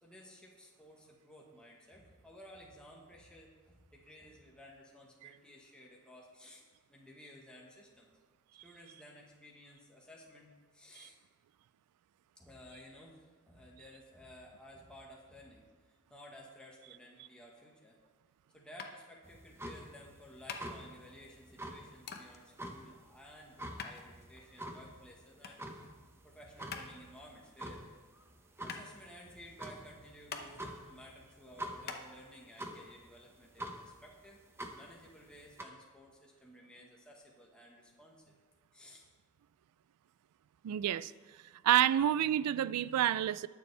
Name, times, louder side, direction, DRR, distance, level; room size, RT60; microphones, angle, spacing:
voice 1, 0.0-6.6 6.9-8.1 8.6-11.2 12.4-18.0 18.5-26.0 26.2-27.8 28.6-34.4 34.7-38.3 38.7-39.1, equal, 5° left, -2 dB, 1.2 m, -55 dB
sound 1, 18.8-32.0, left 5 dB, 45° left, 0.9 m, -49 dB
sound 2, 19.3-35.6, right 1 dB, 10° right, 0.8 m, -48 dB
voice 2, 40.6-41.1 41.6-43.5, right 11 dB, 85° right, 18 dB, 0.3 m, -28 dB
20.0 x 7.0 x 3.3 m, 1.4 s
head